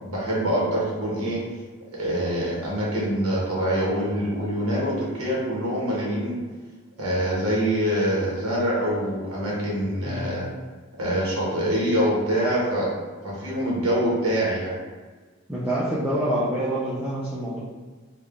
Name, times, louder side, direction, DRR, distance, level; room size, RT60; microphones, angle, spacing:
voice 1, 0.0-1.4 2.0-6.4 7.0-10.5 11.0-12.9 13.2-14.7, equal, 85° right, -5 dB, 0.8 m, -25 dB
voice 2, 15.5-17.6, right 1 dB, 5° right, -10 dB, 0.4 m, -26 dB
3.1 x 2.0 x 2.3 m, 1.4 s
head